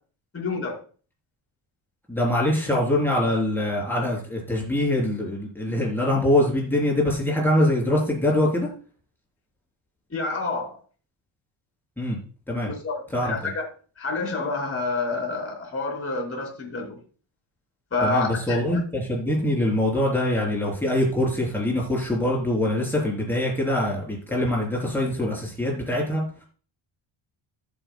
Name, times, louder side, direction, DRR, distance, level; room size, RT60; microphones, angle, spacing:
voice 1, 0.3-0.8 10.1-10.8 12.7-13.7 14.0-17.0 17.9-18.8, left 3 dB, 25° left, -2 dB, 3.5 m, -28 dB
voice 2, 2.1-8.7 12.0-12.2 12.5-12.7 13.1-13.5 18.0-26.2, left 1 dB, 5° left, -2 dB, 4.0 m, -24 dB
15.0 x 7.3 x 2.3 m, 0.39 s
cardioid pair, 155°, 46 cm